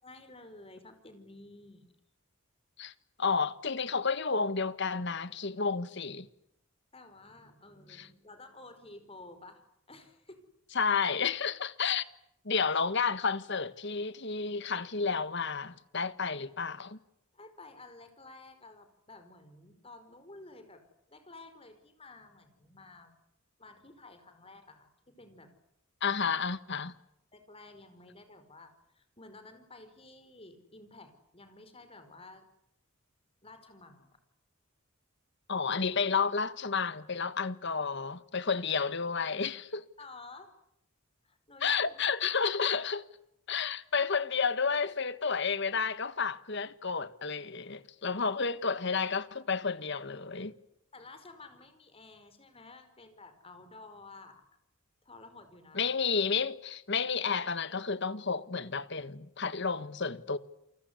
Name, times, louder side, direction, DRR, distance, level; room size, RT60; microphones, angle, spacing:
voice 1, 0.0-1.9 6.9-9.6 9.9-10.4 17.3-23.1 23.6-25.5 27.3-32.5 33.4-34.2 40.0-40.5 41.2-42.0 50.9-54.5 55.0-55.9, left 2 dB, 25° left, 5.0 m, -52 dB
voice 2, 3.2-6.3 10.7-12.0 12.4-17.0 26.0-26.9 35.5-39.9 41.6-43.0 43.5-50.5 55.7-60.4, left 5 dB, 55° left, 1.5 m, -31 dB
29.0 x 24.5 x 8.2 m
head